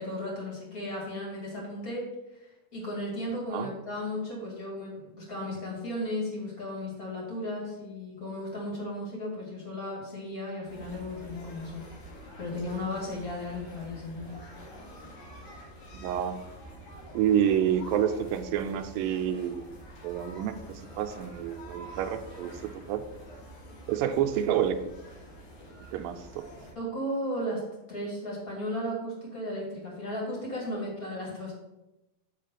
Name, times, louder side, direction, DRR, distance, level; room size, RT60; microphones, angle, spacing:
voice 1, 0.0-2.1 2.7-11.9 12.4-14.4 26.7-31.5, left 1 dB, 30° left, -3 dB, 2.2 m, -35 dB
sound 1, 10.7-26.7, equal, 90° left, 4.3 m, -47 dB
voice 2, 15.9-16.4 17.1-19.6 20.0-23.1 23.9-24.8 25.9-26.5, right 9 dB, 80° right, 7 dB, 2.2 m, -28 dB
9.3 x 3.7 x 5.8 m, 0.96 s
omnidirectional pair, 4.1 m